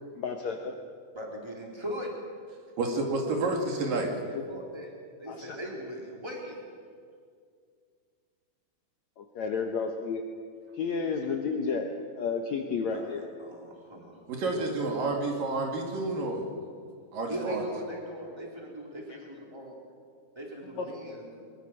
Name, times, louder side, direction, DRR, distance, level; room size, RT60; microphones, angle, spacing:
voice 1, 0.2-0.8 5.3-5.6 9.2-10.2 10.8-11.9 12.2-13.3 19.1-19.2 20.7-21.0, left 5 dB, 65° left, 4 dB, 1.8 m, -31 dB
voice 2, 1.1-2.1 4.0-4.9 5.2-6.6 12.9-14.2 14.6-14.7 17.3-19.7 20.3-21.4, equal, 5° right, -1 dB, 3.3 m, -40 dB
voice 3, 2.8-4.1 14.3-16.4 17.1-17.6, right 2 dB, 65° right, 2 dB, 3.8 m, -29 dB
22.5 x 22.5 x 6.3 m, 2.1 s
omnidirectional pair, 4.4 m